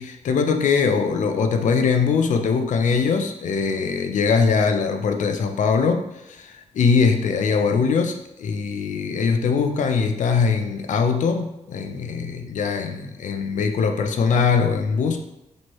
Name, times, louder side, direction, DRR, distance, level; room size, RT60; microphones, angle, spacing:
voice 1, 0.0-15.2, left 5 dB, 80° left, 6 dB, 0.4 m, -21 dB
4.3 x 3.1 x 3.0 m, 0.88 s
wide cardioid pair, 140°, 13 cm